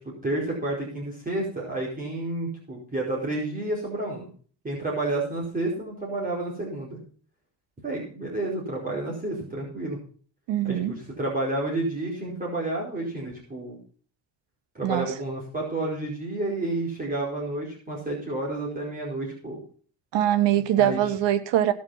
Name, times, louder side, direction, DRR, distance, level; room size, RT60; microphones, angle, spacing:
voice 1, 0.2-4.3 4.6-7.0 7.8-10.0 10.6-13.8 14.7-19.6 20.8-21.0, right 2 dB, 20° right, -4 dB, 4.8 m, -30 dB
voice 2, 10.5-10.9 14.8-15.1 20.1-21.7, right 11 dB, 85° right, 9 dB, 1.7 m, -22 dB
17.5 x 6.4 x 5.7 m, 0.43 s
cardioid pair, 140°, 42 cm